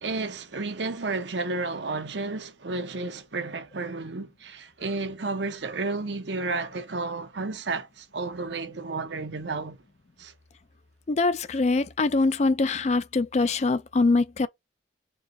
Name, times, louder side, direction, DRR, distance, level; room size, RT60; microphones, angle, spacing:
voice 1, 0.0-9.8 10.2-10.3, right 3 dB, 75° right, 0.8 m, -32 dB
voice 2, 11.1-14.5, left 3 dB, 35° left, 0.4 m, -23 dB
4.7 x 2.9 x 2.6 m
head